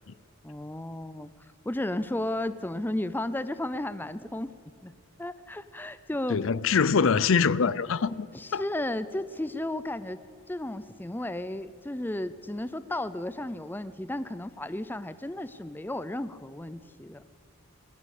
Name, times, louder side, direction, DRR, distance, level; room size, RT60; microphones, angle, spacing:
voice 1, 0.4-4.5 4.8-4.9 5.2-6.4 8.3-10.2 10.5-17.2, left 1 dB, 10° left, 0.4 m, -34 dB
voice 2, 6.3-8.3 8.5-8.6, left 5 dB, 60° left, 0.5 m, -24 dB
20.5 x 17.0 x 8.4 m
head